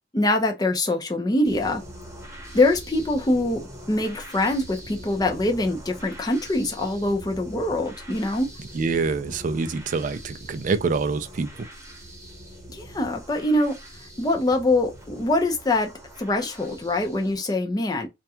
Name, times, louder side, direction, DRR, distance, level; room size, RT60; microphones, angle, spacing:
voice 1, 0.1-1.8 2.5-8.5 12.7-13.8 14.2-15.9 16.2-18.1, left 2 dB, 20° left, 0.5 m, -24 dB
sound 1, 1.4-17.4, equal, 15° right, 1.1 m, -43 dB
voice 2, 8.7-11.7, right 4 dB, 40° right, 0.3 m, -26 dB
2.3 x 2.1 x 2.8 m
head